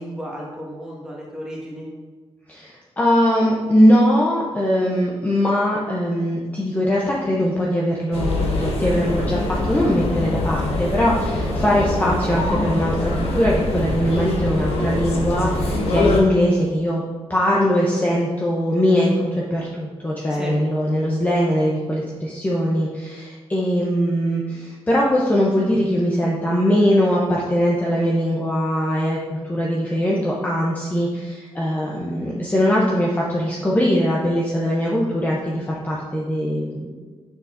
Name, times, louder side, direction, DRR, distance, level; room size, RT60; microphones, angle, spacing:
voice 1, 0.0-1.9 20.3-20.5, equal, 5° right, -5 dB, 1.6 m, -34 dB
voice 2, 2.5-17.0 17.3-36.9, equal, 15° left, -4 dB, 0.7 m, -21 dB
sound 1, 8.1-16.2, left 2 dB, 70° left, 1.2 m, -23 dB
6.9 x 6.3 x 2.6 m, 1.4 s
cardioid pair, 135°, 11 cm